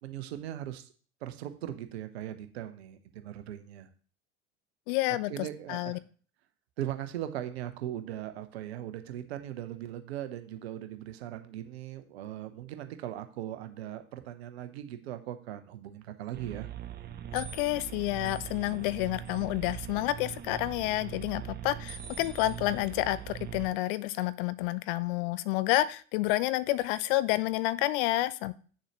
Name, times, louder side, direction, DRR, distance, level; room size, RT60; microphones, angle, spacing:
voice 1, 0.0-0.9 1.2-3.9 5.3-6.0 6.8-16.7, right 12 dB, 65° right, 9 dB, 1.0 m, -39 dB
voice 2, 4.9-5.3 5.7-6.0 17.3-28.5, left 16 dB, 50° left, 16 dB, 0.6 m, -29 dB
sound 1, 16.3-23.7, right 11 dB, 30° right, 0.7 m, -41 dB
sound 2, 17.4-18.9 19.3-19.7 21.9-23.1, right 2 dB, ahead, 1.7 m, -49 dB
8.6 x 6.7 x 3.0 m, 0.41 s
figure-of-eight pair, 70°, 35 cm